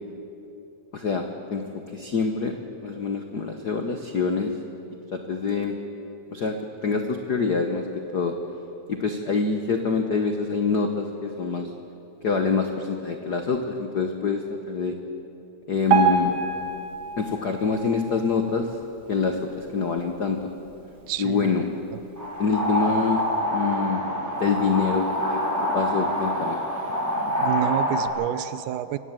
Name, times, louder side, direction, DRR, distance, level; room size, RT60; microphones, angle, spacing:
voice 1, 0.9-1.6 1.9-2.5 2.8-4.5 5.1-5.8 6.3-6.6 6.8-7.9 8.1-8.3 8.9-11.7 12.2-15.0 15.7-16.3 17.2-18.7 19.1-20.4 21.2-21.6 22.4-23.2 23.5-24.0 24.4-25.4 25.7-26.6, left 5 dB, 90° left, 5 dB, 0.8 m, -25 dB
Piano, 15.9-19.0 19.5-19.7 20.0-20.1 20.8-20.9 21.5-21.6, right 5 dB, 40° right, 2.0 m, -26 dB
voice 2, 21.1-21.5 21.9-22.0 27.4-29.0, right 12 dB, 85° right, 14 dB, 2.2 m, -29 dB
sound 1, 22.2-28.1, equal, 5° right, 4.5 m, -26 dB
24.5 x 17.5 x 7.5 m, 2.9 s
omnidirectional pair, 3.6 m